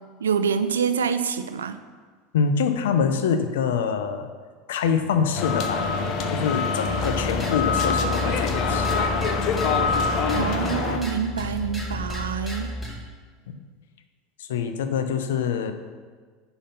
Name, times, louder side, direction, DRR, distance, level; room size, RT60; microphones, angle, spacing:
voice 1, 0.2-1.8 10.0-12.7, right 6 dB, 85° right, 11 dB, 0.4 m, -26 dB
voice 2, 2.3-4.3 4.7-5.9 6.3-9.1 13.5-13.6 14.4-15.7, left 6 dB, 75° left, 8 dB, 0.7 m, -25 dB
sound 1, 5.3-11.0, left 4 dB, 50° left, 0.9 m, -25 dB
sound 2, 6.9-13.0, left 1 dB, 5° left, 1.9 m, -32 dB
10.0 x 4.0 x 5.3 m, 1.5 s
hypercardioid pair, 80°, 0 cm